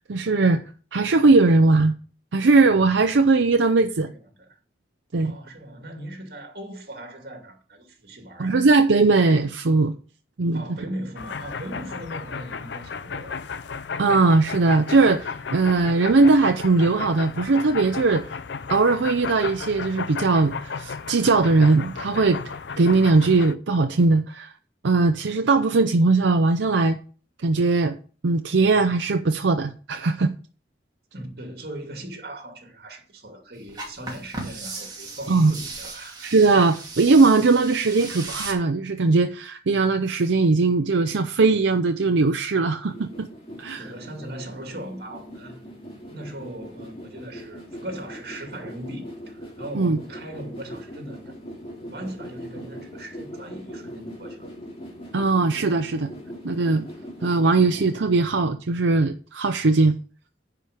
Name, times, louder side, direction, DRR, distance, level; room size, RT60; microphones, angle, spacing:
voice 1, 0.1-0.6 0.9-1.9 2.3-4.1 5.1-5.3 8.4-10.0 10.4-10.6 14.0-18.2 18.7-22.4 22.8-24.5 24.8-27.0 27.4-28.0 28.2-30.3 35.3-35.5 36.2-43.3 43.6-43.9 49.7-50.0 55.1-56.1 56.4-56.9 57.2-60.0, right 3 dB, 85° right, 0.6 m, -19 dB
voice 2, 4.0-4.5 5.2-8.6 10.5-13.4 31.1-36.3 43.8-45.7 46.1-51.3 51.8-54.5, right 1 dB, 55° right, 2.5 m, -39 dB
Muckleford Station, 11.2-23.5, left 5 dB, 75° left, 0.5 m, -34 dB
sound 1, 33.7-38.5, right 3 dB, 20° right, 2.6 m, -37 dB
sound 2, 42.9-58.0, equal, 30° left, 2.4 m, -40 dB
10.0 x 4.9 x 6.7 m
head